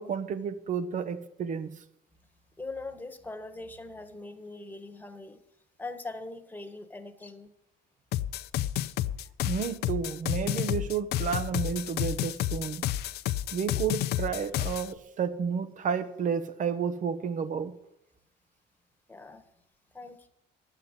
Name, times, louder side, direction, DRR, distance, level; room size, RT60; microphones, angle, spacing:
voice 1, 0.0-1.7 9.5-12.9 13.5-17.8, right 6 dB, 50° right, 1.1 m, -31 dB
voice 2, 2.6-5.4 5.8-7.5 8.8-9.0 19.1-19.5 19.9-20.3, left 2 dB, 10° left, 1.4 m, -41 dB
sound 1, 8.1-14.9, left 13 dB, 75° left, 0.5 m, -30 dB
11.5 x 7.9 x 8.2 m
cardioid pair, 110°, 17 cm